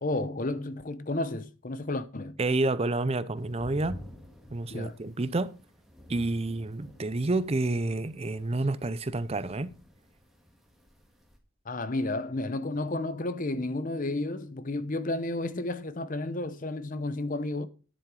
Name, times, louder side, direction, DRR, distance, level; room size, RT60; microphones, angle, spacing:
voice 1, 0.0-2.4 4.7-5.0 11.7-17.7, left 2 dB, 40° left, 0.8 m, -32 dB
voice 2, 2.4-4.0 4.5-5.5 6.1-9.7, right 2 dB, 30° right, 0.5 m, -29 dB
sound 1, 3.3-11.4, equal, ahead, 1.7 m, -50 dB
10.0 x 7.6 x 4.8 m
head